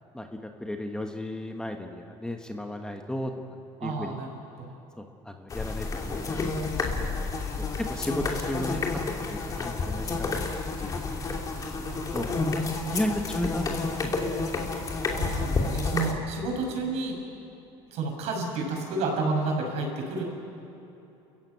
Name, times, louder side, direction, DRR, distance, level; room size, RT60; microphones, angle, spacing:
voice 1, 0.1-3.3 3.8-4.1 5.0-6.6 7.0-9.0 9.3-10.4 10.8-11.4 11.8-12.3 12.9-14.2 14.5-14.7, left 1 dB, 5° left, 3 dB, 1.3 m, -34 dB
voice 2, 3.8-4.3 4.6-4.7 11.8-12.5 12.8-12.9 15.1-17.2 17.9-20.2, right 3 dB, 60° right, 1 dB, 6.3 m, -31 dB
sound 1, 5.5-16.1, left 3 dB, 30° left, 2.8 m, -30 dB
29.0 x 15.0 x 9.4 m, 2.9 s
cardioid pair, 140°, 12 cm